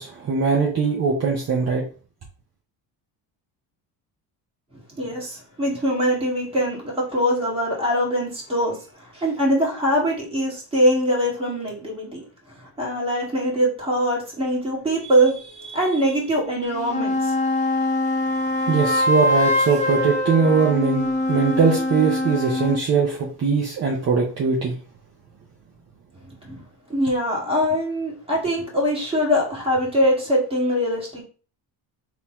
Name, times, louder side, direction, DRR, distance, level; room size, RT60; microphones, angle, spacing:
voice 1, 0.0-1.9 18.7-24.7, right 5 dB, 35° right, -2 dB, 0.9 m, -21 dB
voice 2, 5.0-12.2 12.5-17.4 26.4-26.6 26.9-31.2, equal, 15° right, -4 dB, 1.9 m, -23 dB
sound 1, 16.6-22.8, left 1 dB, 15° left, 1.3 m, -23 dB
3.6 x 3.0 x 3.0 m, 0.37 s
cardioid pair, 120°, 44 cm